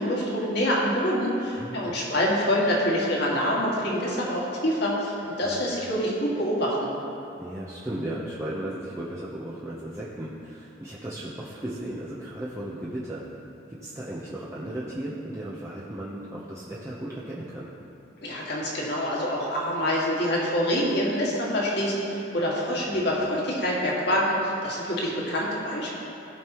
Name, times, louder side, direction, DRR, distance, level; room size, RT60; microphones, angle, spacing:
voice 1, 0.0-6.9 18.2-26.0, equal, 60° left, -5 dB, 2.0 m, -26 dB
voice 2, 1.4-2.0 5.4-5.6 7.4-13.2 13.7-17.7 22.9-23.0, right 1 dB, 15° right, -7 dB, 0.8 m, -36 dB
16.0 x 5.3 x 3.0 m, 2.8 s
head